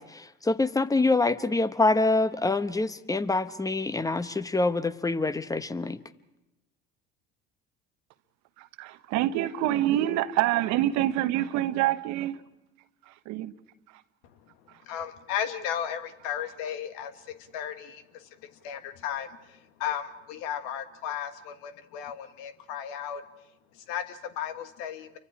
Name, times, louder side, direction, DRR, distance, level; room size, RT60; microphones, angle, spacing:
voice 1, 0.0-6.0, left 3 dB, 10° left, 13 dB, 1.0 m, -26 dB
voice 2, 8.6-12.4 13.0-13.5 13.9-14.0 14.7-14.8, right 14 dB, 65° right, 12 dB, 1.1 m, -27 dB
voice 3, 14.8-23.2 23.7-25.2, left 9 dB, 70° left, 9 dB, 1.5 m, -35 dB
29.5 x 24.0 x 4.9 m, 0.94 s
hypercardioid pair, 70°, 31 cm